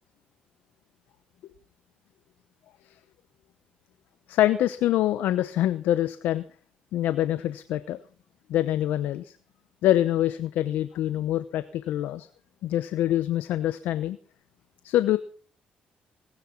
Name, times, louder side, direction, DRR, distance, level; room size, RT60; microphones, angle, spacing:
voice 1, 4.3-6.4 6.9-8.0 8.5-9.3 9.8-12.3 12.6-14.2 14.8-15.2, left 13 dB, 80° left, 13 dB, 0.8 m, -25 dB
19.0 x 10.0 x 5.8 m, 0.43 s
supercardioid pair, 70°, 3 cm